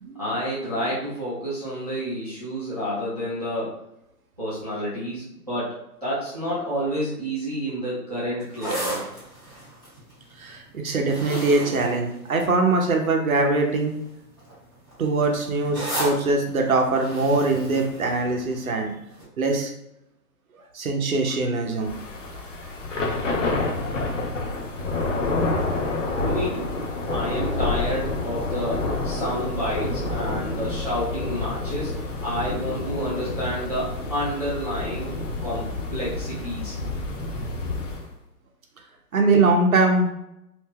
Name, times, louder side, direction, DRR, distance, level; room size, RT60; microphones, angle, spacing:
voice 1, 0.2-3.7 4.4-5.7 6.0-9.0 26.2-26.7 27.1-31.9 32.2-35.1 35.4-35.7 35.9-36.8, equal, 25° right, -10 dB, 0.6 m, -29 dB
sound 1, 8.4-12.8 13.6-13.9 14.1-18.8 19.2-19.3, right 1 dB, 15° left, 0.7 m, -34 dB
voice 2, 10.4-14.0 15.0-18.9 19.4-19.7 20.7-21.9 39.1-40.1, right 3 dB, 60° right, 2 dB, 0.8 m, -22 dB
Thunder / Rain, 21.8-38.1, left 2 dB, 55° left, 0.6 m, -28 dB
2.6 x 2.2 x 3.5 m, 0.83 s
hypercardioid pair, 175°, 48 cm